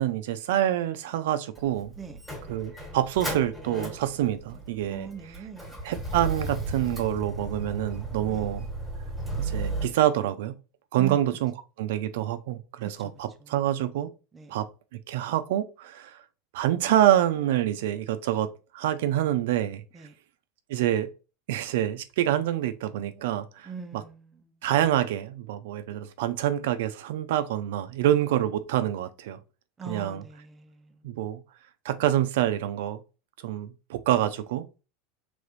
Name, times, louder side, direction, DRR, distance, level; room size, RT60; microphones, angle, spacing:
voice 1, 0.0-1.9 2.5-5.1 5.8-8.7 9.4-10.5 10.9-11.5 11.8-14.1 14.5-14.6 15.1-16.2 16.5-18.5 18.7-19.8 20.7-21.1 21.5-24.0 24.6-29.4 29.9-30.2 31.0-31.4 31.8-33.0 33.4-34.8, right 12 dB, 75° right, 0.6 m, -26 dB
Motor vehicle (road), 1.5-9.9, right 2 dB, ahead, 1.4 m, -35 dB
voice 2, 4.9-5.7 8.3-8.5 11.0-11.2 12.8-13.1 13.4-13.5 14.3-14.6 19.9-20.1 23.6-24.5 29.8-31.1, right 7 dB, 15° right, 0.5 m, -41 dB
5.0 x 3.5 x 2.6 m
supercardioid pair, 170°, 0 cm